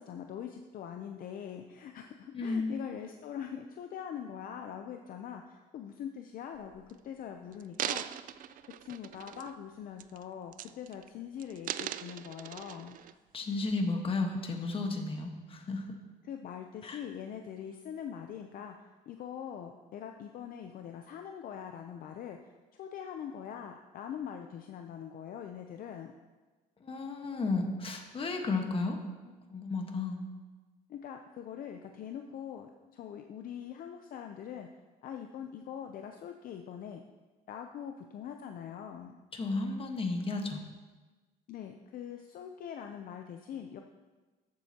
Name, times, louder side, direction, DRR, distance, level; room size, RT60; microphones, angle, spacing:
voice 1, 0.0-8.3 8.8-13.0 16.2-26.1 30.9-34.7 35.0-37.0 37.5-39.2 41.5-43.8, left 8 dB, 55° left, 5 dB, 0.6 m, -43 dB
voice 2, 2.3-2.7 13.3-16.0 16.8-17.0 26.8-29.0 29.2-30.2 39.3-40.6, left 3 dB, 30° left, 3 dB, 1.3 m, -33 dB
sound 1, 6.5-6.9 7.5-9.6 10.0-10.2 10.5-11.1 11.4-13.1 13.7-13.8, right 11 dB, 55° right, 0.4 m, -39 dB
13.5 x 7.5 x 2.9 m, 1.3 s
cardioid pair, 110°, 17 cm